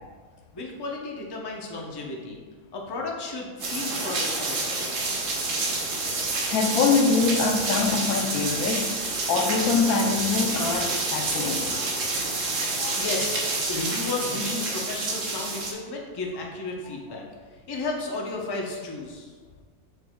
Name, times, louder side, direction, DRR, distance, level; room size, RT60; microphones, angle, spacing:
voice 1, 0.5-2.4 2.7-5.1 13.0-17.2 17.5-19.3, left 3 dB, 25° left, -1 dB, 0.6 m, -33 dB
sound 1, 3.6-15.7, right 3 dB, 65° right, 1.2 m, -28 dB
voice 2, 6.5-8.9 9.3-12.0 12.8-13.0, left 5 dB, 90° left, 4 dB, 1.1 m, -24 dB
6.7 x 6.2 x 2.3 m, 1.5 s
omnidirectional pair, 1.5 m